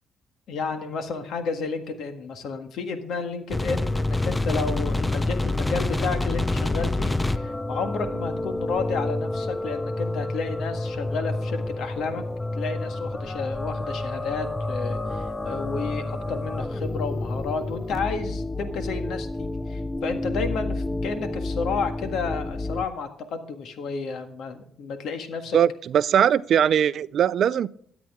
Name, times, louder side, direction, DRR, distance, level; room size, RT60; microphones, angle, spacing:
voice 1, 0.5-12.2 12.5-25.6, left 4 dB, 75° left, 7 dB, 1.6 m, -31 dB
sound 1, 3.5-22.9, left 2 dB, 15° left, 0.5 m, -28 dB
voice 2, 25.5-27.7, right 9 dB, 65° right, 18 dB, 0.4 m, -20 dB
13.5 x 8.9 x 3.6 m, 0.62 s
cardioid pair, 90°, 0 cm